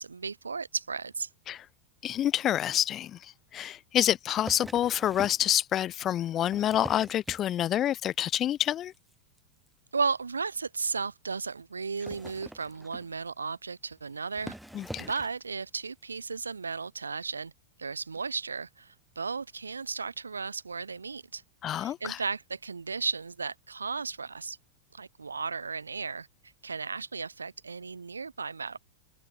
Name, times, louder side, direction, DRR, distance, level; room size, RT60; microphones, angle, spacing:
voice 1, 0.0-1.3 9.9-14.6 15.0-17.5 17.8-21.4 21.7-24.6 24.9-26.3 26.6-28.8, right 4 dB, 75° right, 2.6 m, -35 dB
voice 2, 2.0-8.9 14.7-15.1 21.6-22.2, left 11 dB, 30° left, 1.8 m, -28 dB
sound 1, 4.4-5.5 6.3-7.9 8.3-8.7 8.9-9.1 9.4-9.5 9.7-9.8 10.1-10.2 10.8-10.9 11.8-13.2 13.9-14.0 14.3-15.4 16.2-16.3, right 1 dB, ahead, 7.0 m, -44 dB
figure-of-eight pair, 90°, 0 cm